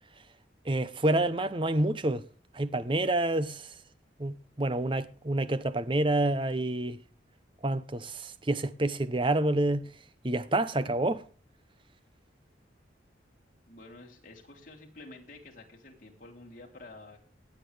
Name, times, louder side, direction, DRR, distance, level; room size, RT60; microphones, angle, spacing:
voice 1, 0.6-2.2 2.5-3.7 4.2-7.0 7.6-9.9 10.2-11.2, right 2 dB, 30° right, 0.7 m, -28 dB
voice 2, 13.7-17.2, left 2 dB, 45° left, 3.3 m, -49 dB
18.5 x 8.2 x 3.3 m
head